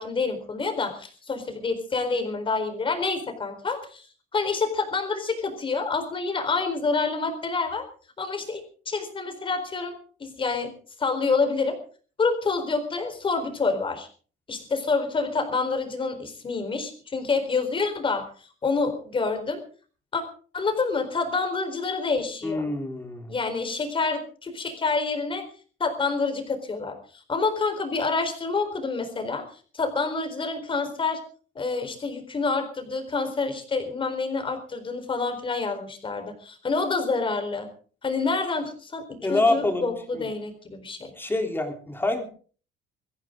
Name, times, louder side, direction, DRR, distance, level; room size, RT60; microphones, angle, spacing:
voice 1, 0.0-4.0 4.3-7.8 8.2-8.6 8.9-10.7 11.0-11.8 12.2-14.1 14.5-18.3 18.6-19.6 20.1-20.2 20.5-22.6 23.3-25.4 25.8-27.0 27.3-29.5 29.7-31.2 31.6-37.7 38.0-41.1, left 4 dB, 25° left, 8 dB, 4.2 m, -27 dB
voice 2, 22.4-23.4 39.2-40.2 41.2-42.2, left 2 dB, 10° left, 4 dB, 3.4 m, -26 dB
23.0 x 15.5 x 3.8 m, 0.41 s
cardioid pair, 140°, 20 cm